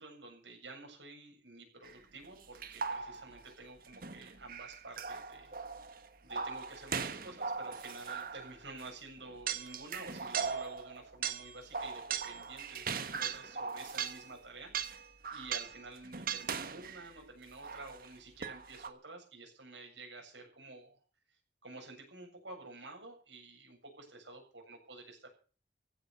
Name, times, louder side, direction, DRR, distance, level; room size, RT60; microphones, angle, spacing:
voice 1, 0.0-5.9 6.2-14.7 15.3-21.0 21.6-25.3, right 2 dB, 80° right, 2 dB, 7.8 m, -50 dB
sound 1, 1.8-1.9 2.5-3.5 3.9-8.9 9.2-14.3 14.7-17.1 17.6-18.1 18.4-18.9, right 6 dB, 50° right, 1.4 m, -39 dB
16.0 x 9.9 x 7.0 m, 0.39 s
head